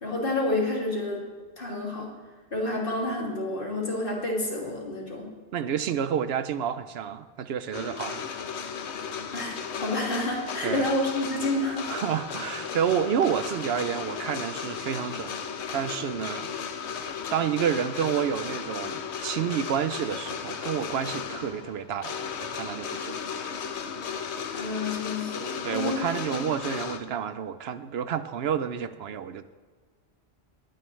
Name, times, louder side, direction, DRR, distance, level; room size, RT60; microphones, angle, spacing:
voice 1, 0.0-1.3 1.6-2.1 2.5-5.3 9.3-11.9 24.5-26.4, left 2 dB, 55° left, -3 dB, 2.6 m, -29 dB
voice 2, 5.5-8.3 10.6-10.9 11.6-15.4 15.7-16.5 17.3-23.2 25.6-29.6, right 8 dB, 70° right, 12 dB, 0.8 m, -29 dB
sound 1, 7.7-27.0, left 6 dB, 85° left, 1.1 m, -35 dB
19.5 x 9.6 x 3.2 m, 1.4 s
omnidirectional pair, 1.1 m